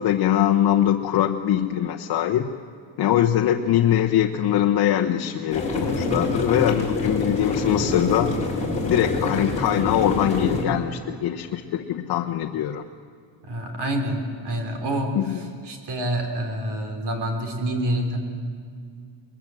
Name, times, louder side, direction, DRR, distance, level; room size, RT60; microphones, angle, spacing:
voice 1, 0.0-2.5 3.0-8.4 8.9-12.8 15.1-15.5, left 11 dB, 55° left, 3 dB, 1.0 m, -22 dB
sound 1, 5.5-10.6, left 2 dB, 15° left, 3.9 m, -26 dB
voice 2, 13.5-15.2 15.7-18.2, right 1 dB, 60° right, 4 dB, 3.8 m, -27 dB
22.0 x 21.5 x 7.8 m, 2.2 s
cardioid pair, 150°, 46 cm